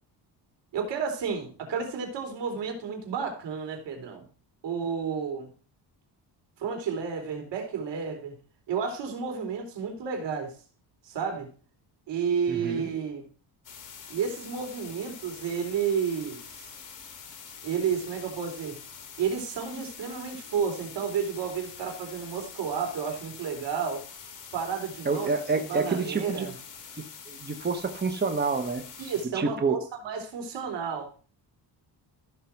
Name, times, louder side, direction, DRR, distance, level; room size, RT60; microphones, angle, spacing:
voice 1, 0.7-4.3 4.6-5.5 6.6-8.4 8.7-10.6 11.0-11.5 12.1-13.3 14.1-16.7 17.6-18.8 19.2-24.1 24.5-25.3 25.5-26.5 29.0-31.1, right 6 dB, 75° right, 3.9 m, -31 dB
voice 2, 12.5-12.9 25.0-26.5 27.3-28.8 29.3-29.8, right 4 dB, 25° right, 1.2 m, -28 dB
sound 1, 13.6-29.3, left 6 dB, 45° left, 3.0 m, -45 dB
14.5 x 6.7 x 4.6 m
cardioid pair, 120°, 43 cm